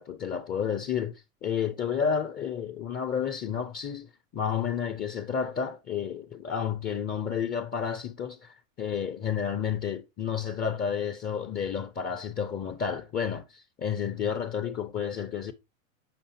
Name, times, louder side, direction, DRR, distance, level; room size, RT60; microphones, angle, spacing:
voice 1, 0.0-15.5, left 7 dB, 25° left, 0.6 m, -31 dB
6.8 x 5.0 x 2.8 m
hypercardioid pair, 120°, 41 cm